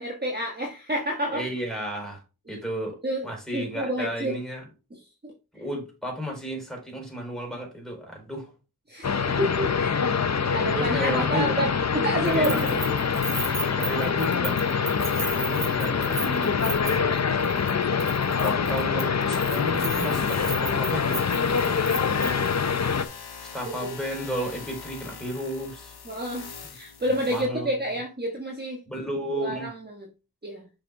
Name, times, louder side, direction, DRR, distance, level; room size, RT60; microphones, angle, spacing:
voice 1, 0.0-1.4 2.5-2.6 3.0-3.3 3.5-4.4 5.2-5.3 8.9-10.0 10.3-12.8 22.2-22.6 23.6-23.9 26.1-28.8 29.3-30.1 30.4-30.6, equal, 25° right, 1.4 m, -29 dB
voice 2, 1.3-2.2 2.5-3.0 3.2-4.6 5.5-8.5 10.5-11.5 12.2-13.0 13.6-14.6 15.3-17.5 18.4-21.8 23.5-25.9 27.3-27.7 28.9-29.7, equal, ahead, 4.3 m, -33 dB
sound 1, 9.0-23.0, left 6 dB, 45° left, 0.7 m, -25 dB
Keys jangling, 12.2-17.2 17.4-17.7 18.0-22.5, right 3 dB, 60° right, 1.6 m, -35 dB
sound 2, 19.8-27.5, left 6 dB, 90° left, 0.9 m, -43 dB
6.4 x 6.1 x 3.6 m
wide cardioid pair, 60°, 37 cm